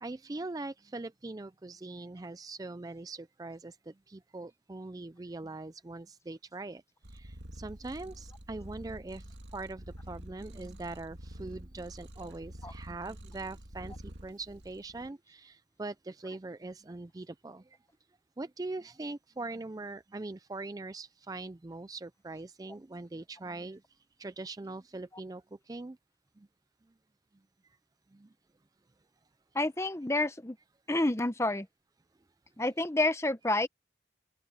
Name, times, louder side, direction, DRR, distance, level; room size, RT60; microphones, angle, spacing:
voice 1, 0.0-6.8 7.1-17.8 18.4-23.8 24.2-26.0 26.4-26.5 28.1-28.3, right 2 dB, 20° right, 0.4 m, -42 dB
Purr, 7.0-15.1, right 1 dB, 85° right, 2.1 m, -47 dB
voice 2, 29.5-30.6 30.9-31.7 32.6-33.7, left 2 dB, 15° left, 0.8 m, -29 dB
open air
head